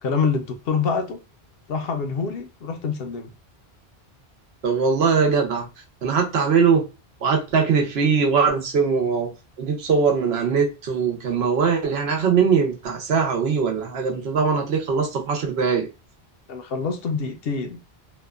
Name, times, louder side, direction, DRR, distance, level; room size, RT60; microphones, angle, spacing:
voice 1, 0.0-1.2 1.7-3.3 16.5-17.8, left 5 dB, 70° left, 0.8 m, -26 dB
voice 2, 4.6-5.7 6.0-6.8 7.2-9.3 9.6-15.9, right 5 dB, 80° right, 0.9 m, -21 dB
2.8 x 2.2 x 2.3 m
omnidirectional pair, 1.0 m